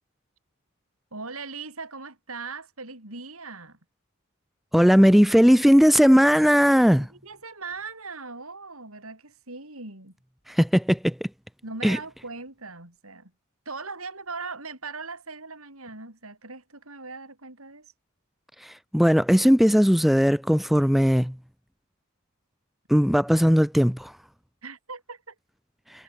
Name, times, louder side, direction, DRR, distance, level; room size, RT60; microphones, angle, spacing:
voice 1, 1.1-3.8 6.9-10.1 11.6-13.3 13.7-17.9 24.6-25.3, right 4 dB, 80° right, 7.8 m, -39 dB
voice 2, 4.7-7.1 10.5-11.2 11.8-12.0 18.6-21.3 22.9-24.1, equal, ahead, 0.5 m, -18 dB
head